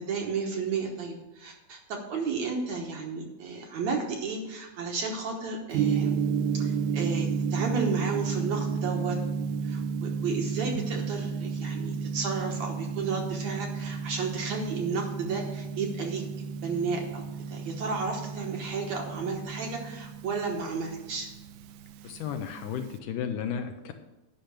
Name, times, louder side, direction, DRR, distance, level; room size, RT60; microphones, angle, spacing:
voice 1, 0.0-6.2 6.5-16.2 16.6-21.3, right 4 dB, 65° right, 1 dB, 2.0 m, -33 dB
Gong, 5.7-23.0, right 6 dB, 80° right, 1.7 m, -32 dB
voice 2, 22.0-23.9, left 7 dB, 80° left, 6 dB, 2.0 m, -33 dB
10.5 x 5.8 x 6.6 m, 1.0 s
omnidirectional pair, 4.1 m